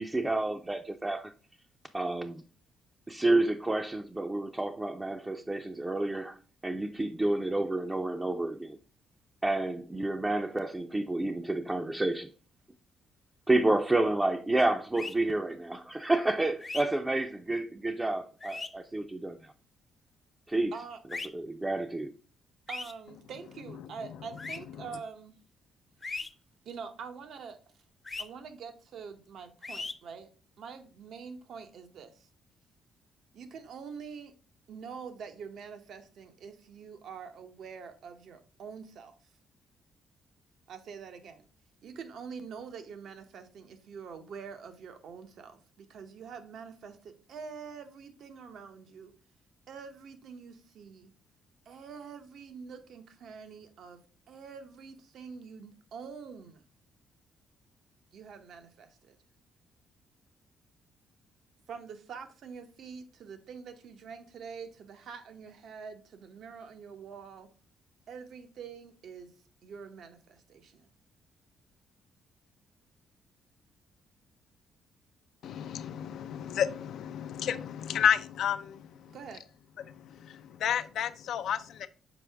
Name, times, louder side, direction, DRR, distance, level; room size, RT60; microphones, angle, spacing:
voice 1, 0.0-1.3 1.9-2.4 3.1-6.4 6.6-8.8 9.4-12.3 13.5-19.4 20.5-20.7 21.3-22.1, right 2 dB, 15° right, 0.5 m, -29 dB
sound 1, 15.0-15.2 16.6-16.8 18.4-18.7 21.1-21.3 22.7-22.9 24.4-24.6 26.0-26.3 28.1-28.2 29.6-29.9, left 3 dB, 25° left, 0.7 m, -37 dB
voice 2, 22.7-25.3 26.6-27.6 28.2-30.3 30.6-32.3 33.3-34.3 34.7-39.2 40.7-41.4 41.8-49.1 49.7-51.1 51.7-56.6 58.1-59.2 61.7-67.5 68.1-69.3 69.6-70.9 79.1-79.4, right 6 dB, 70° right, 0.8 m, -45 dB
voice 3, 75.4-79.2 79.9-81.9, left 9 dB, 70° left, 0.5 m, -31 dB
6.2 x 4.5 x 3.4 m
cardioid pair, 90°, 0 cm